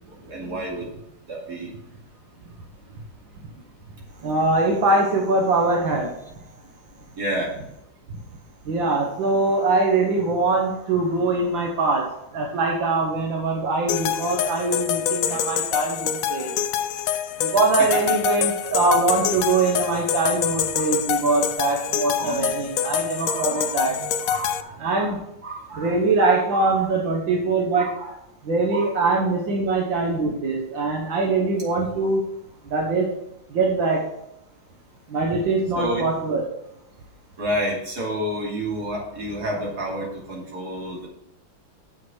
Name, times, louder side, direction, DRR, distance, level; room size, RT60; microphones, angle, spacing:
voice 1, 0.2-0.9 1.3-1.7 7.2-7.5 15.3-15.4 17.8-18.1 20.7-21.0 22.2-22.5 23.2-26.0 26.5-26.9 27.8-28.2 28.7-28.9 35.7-36.1 37.4-41.1, right 1 dB, 55° right, -3 dB, 3.2 m, -30 dB
voice 2, 4.2-6.1 8.7-12.1 12.3-16.5 17.4-24.0 24.8-25.2 25.8-27.9 28.5-32.2 32.7-33.1 33.5-34.0 35.1-36.4, right 3 dB, 85° right, 0 dB, 2.0 m, -22 dB
sound 1, 13.9-24.6, left 9 dB, 70° left, 0.8 m, -26 dB
7.4 x 6.6 x 6.1 m, 0.80 s
omnidirectional pair, 2.0 m